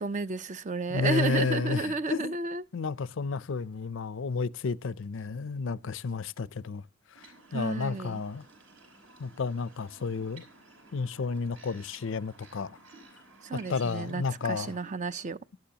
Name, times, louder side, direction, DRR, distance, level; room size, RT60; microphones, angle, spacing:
voice 1, 0.0-2.6 7.5-8.2 13.4-15.4, right 3 dB, 35° right, 0.5 m, -32 dB
voice 2, 0.9-2.3 2.7-6.8 7.2-8.4 9.2-10.4 10.9-12.8 13.7-14.8, left 4 dB, 60° left, 0.5 m, -31 dB
sound 1, 7.1-14.9, right 2 dB, 65° right, 5.1 m, -54 dB
17.0 x 12.0 x 2.8 m
head